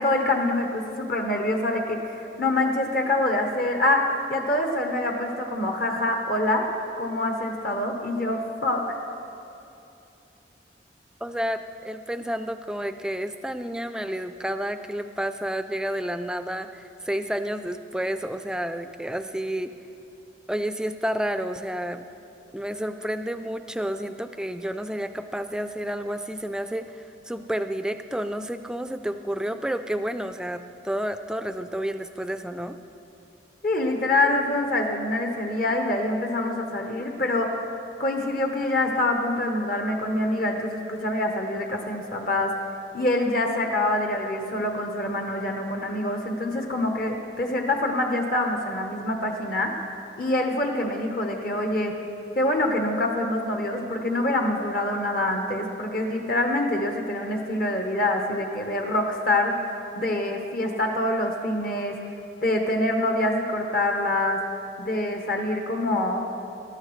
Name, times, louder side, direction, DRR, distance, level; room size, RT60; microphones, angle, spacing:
voice 1, 0.0-6.7 7.0-9.0 33.6-37.5 38.0-42.5 42.9-49.7 50.2-51.9 52.4-59.5 59.9-61.9 62.4-64.4 64.8-66.2, left 1 dB, 50° left, 2 dB, 1.0 m, -25 dB
voice 2, 11.2-19.7 20.5-22.1 22.5-32.8, equal, 5° right, 9 dB, 0.4 m, -30 dB
19.5 x 13.0 x 3.2 m, 2.8 s
head